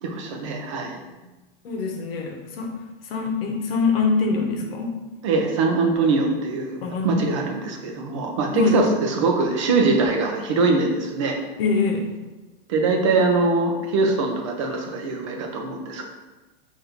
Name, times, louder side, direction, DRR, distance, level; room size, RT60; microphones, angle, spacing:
voice 1, 0.0-1.0 5.2-11.4 12.7-16.1, right 3 dB, 30° right, 2 dB, 0.5 m, -22 dB
voice 2, 1.6-2.8 3.1-4.9 6.8-7.4 8.5-8.8 11.6-12.1, left 4 dB, 70° left, 2 dB, 0.9 m, -24 dB
3.8 x 2.7 x 4.3 m, 1.1 s
supercardioid pair, 180°, 30 cm